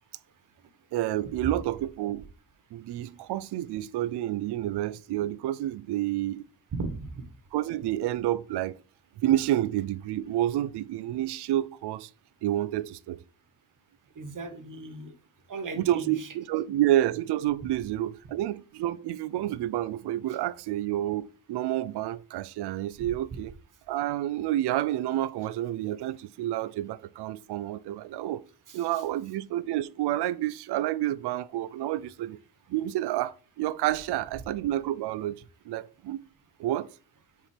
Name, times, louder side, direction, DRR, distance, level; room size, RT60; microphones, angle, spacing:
voice 1, 0.9-2.3 2.7-6.4 7.5-8.8 9.2-12.1 12.4-13.2 15.8-23.5 23.9-28.4 28.7-32.4 32.7-35.4 35.7-36.2 36.6-36.9, right 13 dB, 65° right, 0.5 m, -29 dB
voice 2, 6.7-7.1 14.2-15.1 15.5-16.3 28.7-28.8, right 3 dB, 45° right, 1.4 m, -36 dB
4.7 x 4.4 x 4.9 m
cardioid pair, 75°, 44 cm